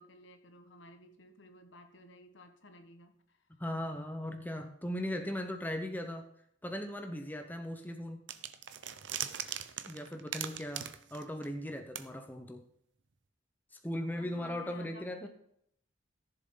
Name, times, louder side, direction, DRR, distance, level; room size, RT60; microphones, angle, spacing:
voice 1, 0.0-3.5 14.1-15.3, left 1 dB, 70° left, 7 dB, 1.5 m, -55 dB
voice 2, 3.6-6.3 6.6-8.2 9.8-12.6 13.8-15.3, left 1 dB, 10° left, 5 dB, 0.9 m, -38 dB
sound 1, 8.3-11.7 11.9-12.0, right 10 dB, 70° right, 0.8 m, -40 dB
15.0 x 7.0 x 3.9 m, 0.70 s
head